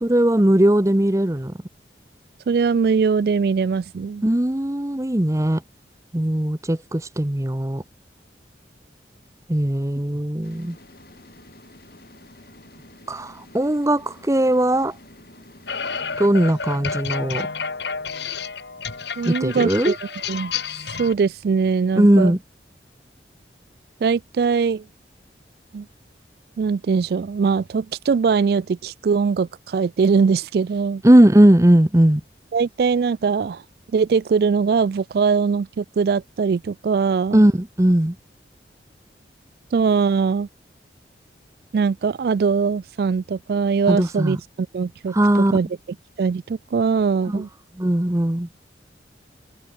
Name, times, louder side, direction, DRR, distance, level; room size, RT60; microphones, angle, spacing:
voice 1, 0.0-1.5 4.2-5.6 6.1-7.8 9.5-10.8 13.1-14.9 16.2-17.5 19.2-19.9 22.0-22.4 31.0-32.2 37.3-38.2 43.9-44.4 45.1-45.5 47.3-47.4 47.8-48.5, right 1 dB, 15° right, 0.8 m, -18 dB
voice 2, 2.5-4.2 19.2-20.5 21.0-22.4 24.0-24.8 25.7-25.9 26.6-31.0 32.5-33.6 33.9-37.4 39.7-40.5 41.7-45.7 46.2-47.5, right 5 dB, 55° right, 0.3 m, -21 dB
sound 1, 10.4-18.4, left 1 dB, 55° left, 5.7 m, -49 dB
sound 2, 15.7-21.1, left 5 dB, 75° left, 2.4 m, -30 dB
head